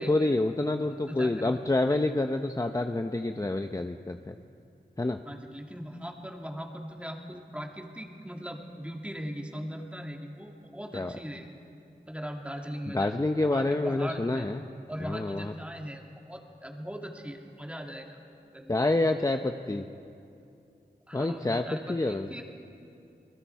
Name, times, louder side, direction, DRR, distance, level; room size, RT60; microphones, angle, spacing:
voice 1, 0.0-4.4 5.0-5.2 10.9-11.1 12.9-14.6 15.0-15.5 18.7-19.9 21.1-21.6 21.9-22.3, left 2 dB, 20° left, 6 dB, 0.7 m, -27 dB
voice 2, 0.8-1.6 1.9-2.0 3.4-3.5 5.2-11.5 12.1-13.1 13.5-14.5 14.9-18.2 18.5-18.9 19.2-19.3 21.1-22.4, equal, 5° right, 1 dB, 2.4 m, -40 dB
27.5 x 21.5 x 4.7 m, 2.6 s
wide cardioid pair, 65°, 17 cm